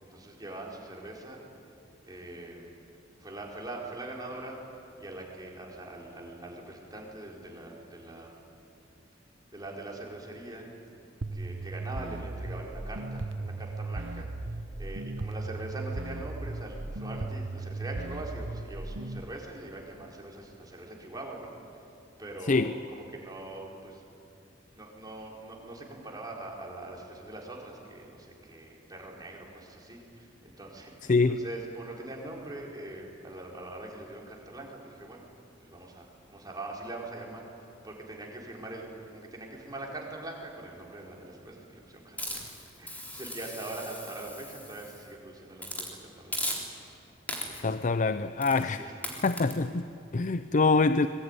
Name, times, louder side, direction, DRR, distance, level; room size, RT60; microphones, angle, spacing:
voice 1, 0.0-1.4 2.1-2.7 3.2-4.6 5.0-8.4 9.5-10.7 11.3-14.3 14.8-21.5 22.2-24.0 24.7-30.9 31.3-35.3 35.6-38.8 39.1-42.4 42.8-46.4 48.6-48.9, right 2 dB, 20° right, -1 dB, 4.5 m, -42 dB
sound 1, 11.2-19.2, right 2 dB, 75° right, 1.0 m, -36 dB
voice 2, 22.4-22.8 31.0-31.4 47.6-48.8 49.2-51.1, left 3 dB, 40° left, 12 dB, 0.5 m, -25 dB
Hiss, 42.2-45.1 45.6-45.9 46.3-46.9 47.3-47.8 48.4-48.7 49.0-49.5, left 1 dB, 10° left, 3.8 m, -38 dB
25.0 x 21.5 x 9.8 m, 2.7 s
head